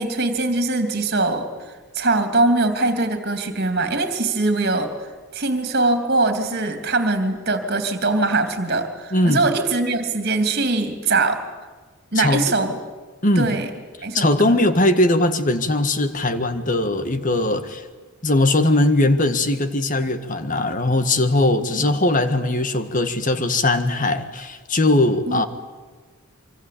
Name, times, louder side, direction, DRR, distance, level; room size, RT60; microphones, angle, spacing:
voice 1, 0.0-1.5 1.9-4.9 5.3-11.4 12.1-12.8 13.4-13.7 14.0-14.7 21.7-21.8 25.3-25.5, right 2 dB, 45° right, 3.0 m, -22 dB
voice 2, 9.1-9.5 12.2-12.4 13.2-13.5 14.1-17.8 18.2-25.5, left 2 dB, 35° left, 1.7 m, -20 dB
25.0 x 25.0 x 8.6 m
head